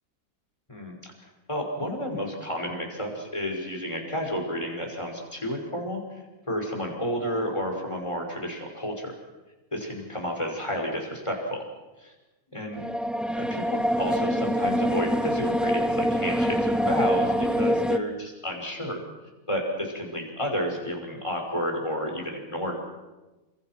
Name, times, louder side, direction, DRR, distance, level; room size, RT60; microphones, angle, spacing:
voice 1, 0.7-1.1 1.5-6.0 6.5-9.1 9.7-11.6 12.0-12.1 12.5-12.8 13.3-19.0 19.5-22.8, equal, 20° left, 2 dB, 5.9 m, -31 dB
sound 1, 12.8-18.0, equal, ahead, 0.6 m, -25 dB
29.5 x 26.0 x 6.1 m, 1.1 s
omnidirectional pair, 1.5 m